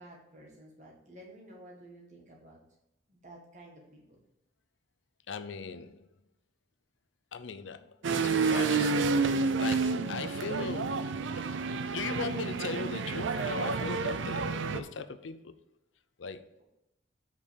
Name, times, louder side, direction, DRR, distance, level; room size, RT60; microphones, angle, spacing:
voice 1, 0.0-2.6 3.1-4.2, right 1 dB, 40° right, -1 dB, 1.8 m, -52 dB
voice 2, 5.3-6.1 7.3-7.9 8.2-11.4 11.9-15.5 16.2-16.6, left 5 dB, 85° left, 10 dB, 0.6 m, -39 dB
sound 1, 8.0-14.8, right 4 dB, 85° right, 0.5 m, -29 dB
5.3 x 5.3 x 6.4 m, 0.90 s
head